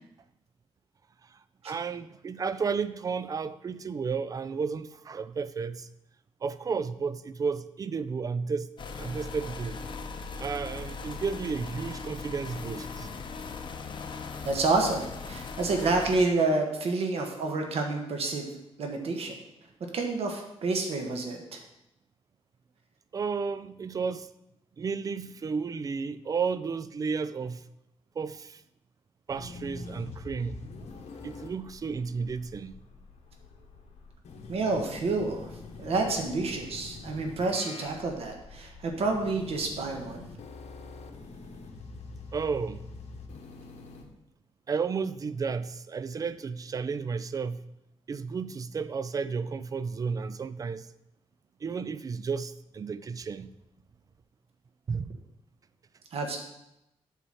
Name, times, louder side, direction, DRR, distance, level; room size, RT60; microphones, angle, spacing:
voice 1, 1.6-5.9 6.4-8.7 9.0-9.8 10.4-13.1 23.1-24.3 24.8-27.6 28.2-28.6 29.3-30.6 31.2-32.8 42.3-42.8 44.7-47.6 48.1-50.9 51.6-53.5 54.9-55.2, right 5 dB, 30° right, 0.3 m, -32 dB
sound 1, 8.8-16.2, left 4 dB, 45° left, 0.7 m, -39 dB
voice 2, 14.4-18.5 18.8-19.4 19.9-21.6 34.5-40.2 56.1-56.4, right 3 dB, 60° right, 1.3 m, -29 dB
sound 2, 29.3-44.0, left 3 dB, 80° left, 1.2 m, -45 dB
8.0 x 4.2 x 6.2 m
wide cardioid pair, 145°, 11 cm